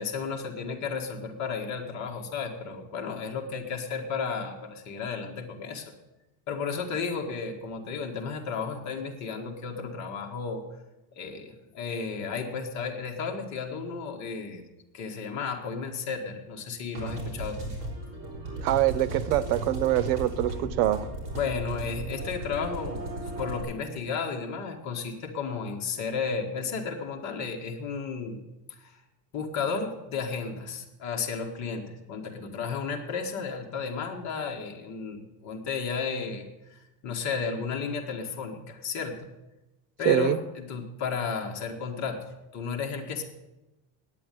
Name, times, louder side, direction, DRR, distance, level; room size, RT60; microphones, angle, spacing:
voice 1, 0.0-5.9 6.5-10.6 11.1-14.6 14.9-17.8 21.3-23.0 23.4-28.4 28.8-29.0 29.3-39.3 40.0-43.2, left 5 dB, 35° left, 2 dB, 1.6 m, -33 dB
sound 1, 16.9-23.6, right 1 dB, 35° right, 4.1 m, -36 dB
voice 2, 18.6-21.1 40.0-40.4, right 14 dB, 90° right, 16 dB, 0.9 m, -24 dB
9.6 x 8.4 x 9.1 m, 1.0 s
cardioid pair, 170°, 46 cm